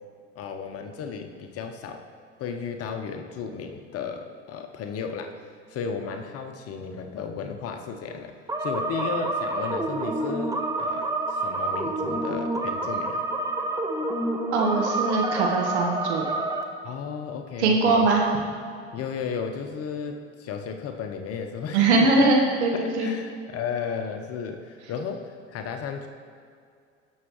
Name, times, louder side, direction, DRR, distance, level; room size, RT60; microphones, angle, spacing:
voice 1, 0.4-2.1 2.4-5.3 5.7-8.3 8.6-13.2 16.8-18.1 18.9-22.1 22.8-26.1, left 6 dB, 45° left, 5 dB, 0.9 m, -34 dB
sound 1, 8.5-16.6, right 2 dB, 10° right, 0.9 m, -28 dB
voice 2, 14.5-16.3 17.6-18.2 21.7-23.1, right 3 dB, 70° right, 1 dB, 1.2 m, -21 dB
18.5 x 6.4 x 3.1 m, 2.2 s
figure-of-eight pair, 65°, 35 cm